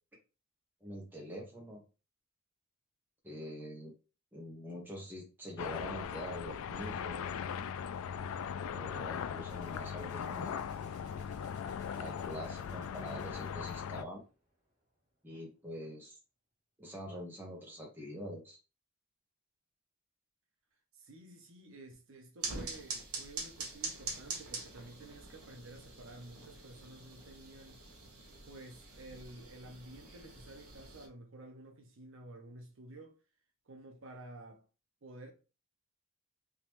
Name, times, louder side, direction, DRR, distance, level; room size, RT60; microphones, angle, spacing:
voice 1, 0.8-1.8 3.2-3.9 4.3-7.3 8.7-10.6 11.9-14.2 15.2-16.2 16.8-18.6, equal, 10° right, 1.1 m, -45 dB
sound 1, 5.6-14.0, left 7 dB, 75° left, 0.3 m, -39 dB
Gunshot gunfire, 9.5-14.7, equal, 35° right, 1.1 m, -60 dB
voice 2, 20.9-27.8 28.5-33.2 33.7-34.6 35.0-35.3, right 1 dB, 65° right, 0.7 m, -52 dB
sound 2, 22.4-31.1, right 4 dB, 80° right, 1.2 m, -44 dB
3.6 x 3.0 x 3.0 m
head